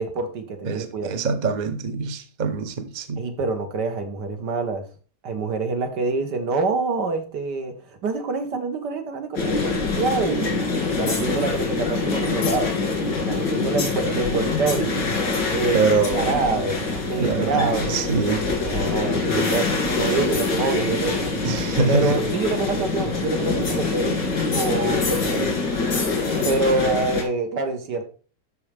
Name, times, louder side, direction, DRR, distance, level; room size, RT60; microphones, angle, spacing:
voice 1, 0.0-1.2 3.2-4.8 5.2-7.7 8.0-10.6 11.0-12.7 13.2-15.1 15.5-15.8 16.1-18.1 18.6-21.3 21.9-24.2 24.5-25.5 26.5-28.0, right 3 dB, 70° right, 1.9 m, -26 dB
voice 2, 0.6-3.2 15.7-16.3 17.2-18.4 21.4-22.2, right 4 dB, 35° right, 0.8 m, -24 dB
sound 1, 9.3-27.2, left 3 dB, 80° left, 3.0 m, -24 dB
12.5 x 4.8 x 3.4 m
omnidirectional pair, 1.9 m